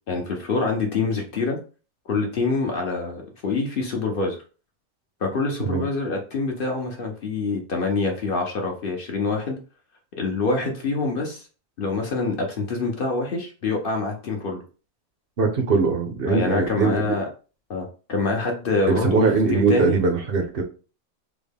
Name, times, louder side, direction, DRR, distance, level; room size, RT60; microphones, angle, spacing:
voice 1, 0.1-1.6 2.1-4.4 5.2-9.6 10.2-11.5 11.8-14.6 16.3-17.2 17.7-19.2 19.5-20.0, left 3 dB, 55° left, 2 dB, 0.6 m, -25 dB
voice 2, 15.4-17.2 18.9-20.6, right 4 dB, 50° right, 4 dB, 0.8 m, -21 dB
3.6 x 2.1 x 3.4 m, 0.36 s
omnidirectional pair, 1.5 m